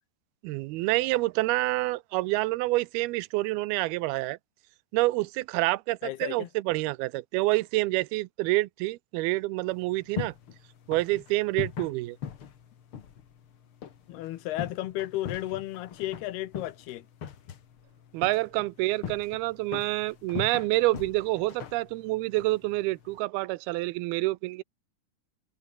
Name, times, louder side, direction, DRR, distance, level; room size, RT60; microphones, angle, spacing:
voice 1, 0.4-4.4 4.9-10.3 10.9-12.2 18.1-24.6, right 20 dB, 80° right, 2.6 m, -27 dB
voice 2, 6.0-6.5 14.1-17.1, left 15 dB, 85° left, 3.1 m, -34 dB
sound 1, 9.7-23.2, left 8 dB, 50° left, 1.8 m, -42 dB
omnidirectional pair, 4.5 m